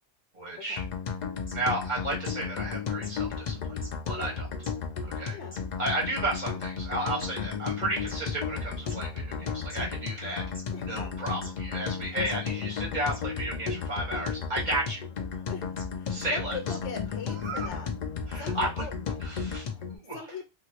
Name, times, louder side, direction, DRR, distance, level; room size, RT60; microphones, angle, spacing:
voice 1, 0.3-0.8 1.5-3.8 4.1-4.5 5.0-5.4 5.8-10.4 10.8-15.0 16.1-16.6 17.4-17.7 18.3-18.9 19.2-20.3, right 1 dB, 40° right, -3 dB, 1.6 m, -33 dB
sound 1, 0.8-20.0, left 6 dB, 50° left, 0.5 m, -34 dB
sound 2, 1.5-1.6 2.2-2.3 3.0-3.1 3.8-3.9 4.6-4.7 5.5-5.6 6.3-6.4 7.2-7.3 8.1-8.2 8.9-9.0 9.7-9.8 10.5-10.6 11.4-11.5 12.2-12.3 13.1-13.2 14.5-14.6 15.8-15.9 16.7-16.8, right 1 dB, 10° left, 1.0 m, -45 dB
voice 2, 16.0-17.9 18.4-18.9 20.1-20.5, left 5 dB, 80° left, 5 dB, 0.9 m, -40 dB
2.9 x 2.9 x 2.8 m, 0.25 s
omnidirectional pair, 1.2 m